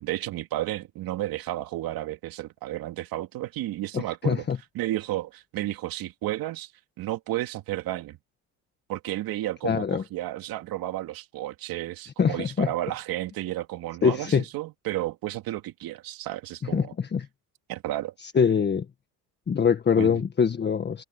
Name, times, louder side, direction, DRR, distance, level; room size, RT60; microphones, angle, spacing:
voice 1, 0.0-4.5 4.7-6.7 7.0-8.2 8.9-16.9 17.7-18.1 20.0-20.2, right 15 dB, 70° right, 2.6 m, -32 dB
voice 2, 3.9-4.6 9.6-10.0 12.2-12.7 14.0-14.4 16.7-17.3 18.3-18.8 19.5-21.0, left 6 dB, 30° left, 1.5 m, -23 dB
open air
cardioid pair, 120°, 37 cm